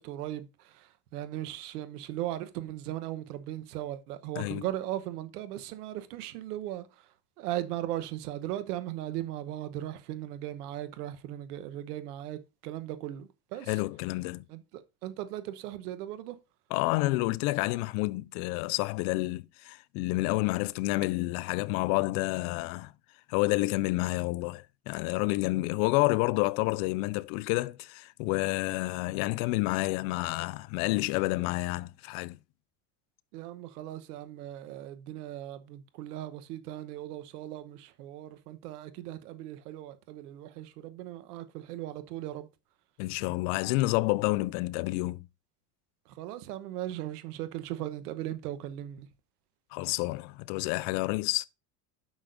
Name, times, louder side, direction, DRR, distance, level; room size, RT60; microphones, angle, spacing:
voice 1, 0.0-6.9 7.4-13.7 14.5-16.4 33.3-42.5 46.2-49.1, right 13 dB, 85° right, 1.1 m, -38 dB
voice 2, 13.7-14.5 16.7-22.9 23.3-32.4 43.0-45.3 49.7-51.5, left 21 dB, 70° left, 0.6 m, -29 dB
10.5 x 6.2 x 2.6 m
supercardioid pair, 90°, 45 cm